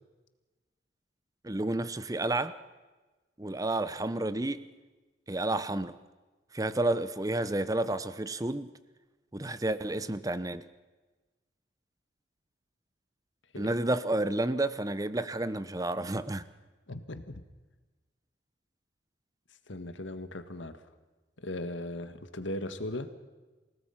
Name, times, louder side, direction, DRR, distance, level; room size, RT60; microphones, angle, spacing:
voice 1, 1.4-2.6 3.4-4.7 5.3-6.0 6.5-8.7 9.3-10.6 13.6-16.5, right 2 dB, 20° right, 0.8 m, -30 dB
voice 2, 16.9-17.4 19.7-20.8 21.4-23.1, left 1 dB, 85° left, 1.7 m, -38 dB
28.5 x 17.5 x 5.8 m
head